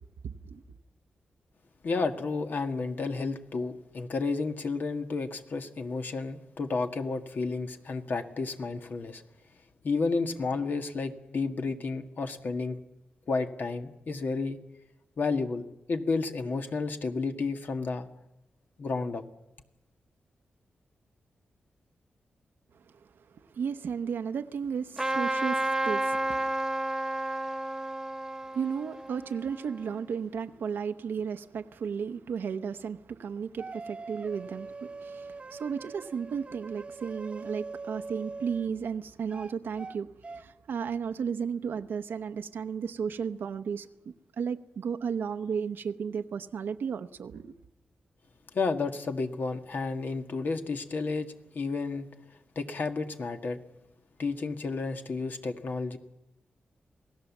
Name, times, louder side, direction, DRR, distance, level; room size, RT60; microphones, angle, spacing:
voice 1, 0.2-0.6 22.9-23.1 23.3-26.5 28.5-40.1 40.3-43.9 44.4-47.5, right 6 dB, 80° right, 0.9 m, -34 dB
voice 2, 1.8-9.2 9.8-12.8 13.3-14.6 15.2-18.1 18.8-19.2 48.5-52.1 52.5-53.6 54.2-56.0, left 4 dB, 60° left, 1.7 m, -31 dB
Trumpet, 25.0-30.0, right 1 dB, 15° right, 1.4 m, -31 dB
sound 1, 33.6-38.7 39.3-40.0 40.2-40.4, right 3 dB, 30° right, 0.9 m, -42 dB
27.5 x 18.0 x 7.3 m
cardioid pair, 90°, 4 cm